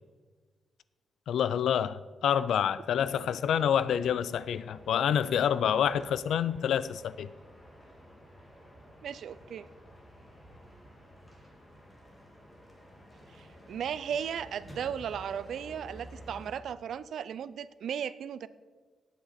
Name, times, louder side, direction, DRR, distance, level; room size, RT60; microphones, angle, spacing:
voice 1, 1.3-7.3, left 9 dB, 75° left, 0.4 m, -27 dB
sound 1, 2.9-16.6, equal, 10° left, 1.9 m, -52 dB
voice 2, 9.0-9.7 13.4-18.5, right 8 dB, 65° right, 0.4 m, -36 dB
18.0 x 8.1 x 4.2 m
wide cardioid pair, 175°, 0 cm